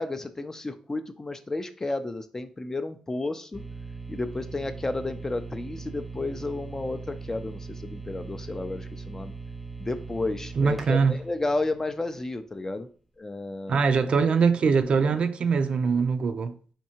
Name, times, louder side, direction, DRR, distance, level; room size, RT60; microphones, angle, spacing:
voice 1, 0.0-3.6 4.1-9.3 9.8-12.9 13.2-13.8, left 2 dB, 25° left, 0.4 m, -32 dB
sound 1, 3.5-12.4, right 4 dB, 5° left, 0.9 m, -40 dB
voice 2, 10.6-11.2 13.7-16.6, right 5 dB, 60° right, 0.4 m, -23 dB
4.4 x 2.7 x 2.8 m
cardioid pair, 80°, 2 cm